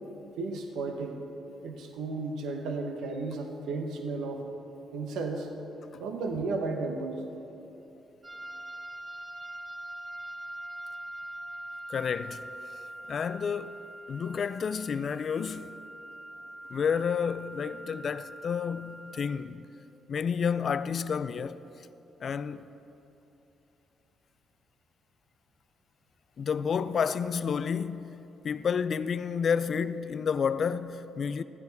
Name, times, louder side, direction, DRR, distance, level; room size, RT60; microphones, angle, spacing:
voice 1, 0.4-1.2 1.6-4.5 4.9-5.5 6.0-7.2, right 3 dB, 80° right, 0.9 m, -33 dB
sound 1, 8.2-19.4, right 1 dB, 30° right, 1.1 m, -43 dB
voice 2, 11.9-12.5 13.1-13.8 14.1-15.8 16.7-19.7 20.1-21.6 22.2-22.7 26.4-31.4, left 6 dB, 50° left, 0.4 m, -30 dB
13.5 x 9.5 x 4.0 m
cardioid pair, 90°, 0 cm